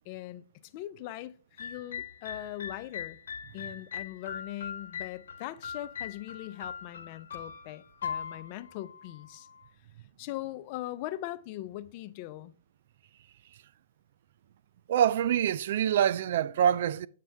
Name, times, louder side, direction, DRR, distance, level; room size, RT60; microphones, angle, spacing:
voice 1, 0.1-3.2 3.5-9.5 10.2-12.5, left 15 dB, 40° left, 0.5 m, -40 dB
sound 1, 1.6-9.6, left 7 dB, 75° left, 1.1 m, -41 dB
voice 2, 14.9-17.1, right 9 dB, 60° right, 0.4 m, -25 dB
8.6 x 7.5 x 3.4 m
hypercardioid pair, 140°, 0 cm